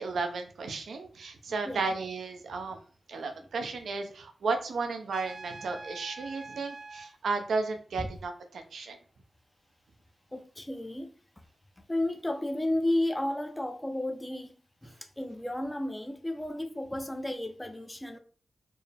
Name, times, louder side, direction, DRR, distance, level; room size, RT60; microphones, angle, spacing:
voice 1, 0.0-2.8 3.1-9.0, right 4 dB, 85° right, 0.6 m, -34 dB
Trumpet, 5.1-7.1, right 3 dB, 45° right, 0.8 m, -44 dB
voice 2, 10.3-11.4 11.9-14.6 14.8-18.2, left 1 dB, 15° left, 0.5 m, -33 dB
4.4 x 2.1 x 3.3 m
cardioid pair, 65°, 0 cm